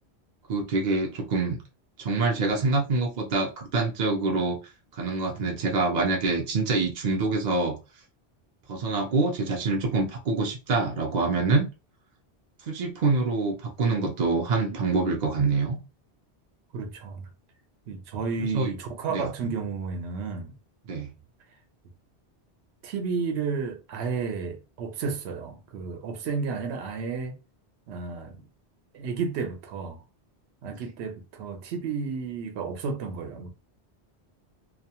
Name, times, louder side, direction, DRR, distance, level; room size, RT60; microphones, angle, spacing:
voice 1, 0.5-1.6 2.0-4.6 4.9-7.8 8.7-11.7 12.6-15.8 18.4-18.7 19.1-19.3 20.9-21.1, right 3 dB, 50° right, 0.6 m, -26 dB
voice 2, 16.7-17.2 17.9-20.5 22.8-27.3 27.9-28.4 28.9-30.0 30.6-33.5, right 5 dB, 75° right, 0.9 m, -32 dB
2.3 x 2.2 x 2.8 m
omnidirectional pair, 1.1 m